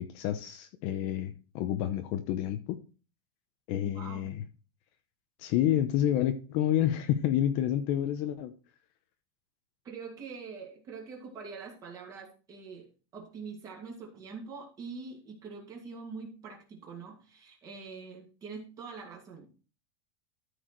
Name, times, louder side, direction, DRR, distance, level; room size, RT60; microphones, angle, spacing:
voice 1, 0.0-2.8 3.7-4.4 5.4-8.5, left 11 dB, 45° left, 0.8 m, -29 dB
voice 2, 3.8-4.3 9.8-19.5, right 5 dB, 25° right, 2.5 m, -44 dB
13.5 x 4.8 x 4.6 m
supercardioid pair, 160°, 13 cm